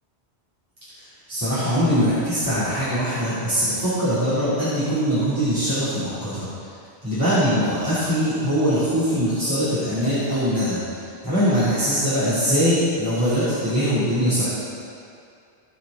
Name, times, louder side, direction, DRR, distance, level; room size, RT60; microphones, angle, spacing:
voice 1, 1.3-6.5 7.0-14.5, equal, 20° right, -14 dB, 3.1 m, -22 dB
17.5 x 6.9 x 3.9 m, 2.5 s
omnidirectional pair, 1.1 m